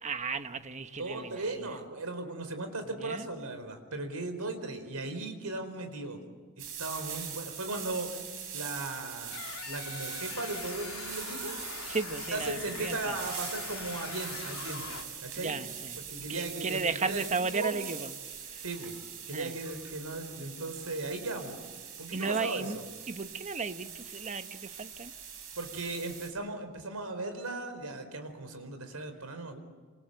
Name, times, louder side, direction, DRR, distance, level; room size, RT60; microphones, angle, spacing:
voice 1, 0.0-1.4 2.9-3.3 11.9-13.2 15.4-18.1 18.4-18.6 19.3-19.6 22.1-22.8 23.1-25.1, right 4 dB, 35° right, 1.1 m, -35 dB
voice 2, 1.0-6.2 6.6-8.1 8.5-9.4 9.7-11.6 12.3-14.8 15.2-15.5 16.1-17.8 18.6-19.0 19.3-21.6 22.0-22.8 25.6-29.6, right 2 dB, 85° right, 4.4 m, -37 dB
sound 1, 6.6-26.3, right 8 dB, 65° right, 6.2 m, -42 dB
sound 2, 9.3-15.0, left 6 dB, 75° left, 2.8 m, -43 dB
27.5 x 25.5 x 8.0 m
head